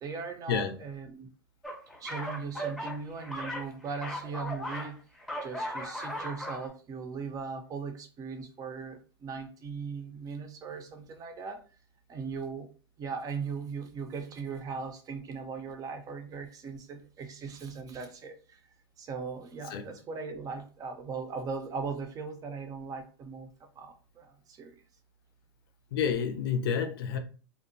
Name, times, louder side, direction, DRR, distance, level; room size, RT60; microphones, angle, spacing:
voice 1, 0.0-1.3 2.0-5.0 5.4-11.6 12.1-12.7 13.0-18.6 19.0-24.8, right 5 dB, 25° right, 0.5 m, -39 dB
sound 1, 1.6-4.9 5.2-6.7, equal, ahead, 0.8 m, -37 dB
voice 2, 25.9-27.2, left 7 dB, 65° left, 0.5 m, -29 dB
2.7 x 2.1 x 2.6 m
hypercardioid pair, 110°, 13 cm